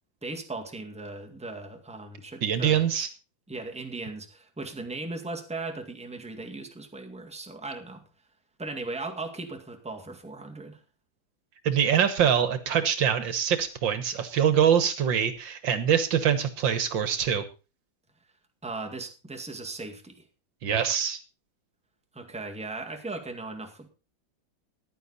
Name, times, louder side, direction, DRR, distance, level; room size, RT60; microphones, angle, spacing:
voice 1, 0.2-3.1 3.5-8.0 8.6-10.8 18.6-20.2 22.1-23.9, right 3 dB, 5° right, 3 dB, 1.8 m, -38 dB
voice 2, 2.4-3.1 11.6-17.4 20.6-21.2, right 8 dB, 70° right, 11 dB, 1.9 m, -24 dB
14.5 x 10.5 x 4.1 m, 0.31 s
omnidirectional pair, 2.2 m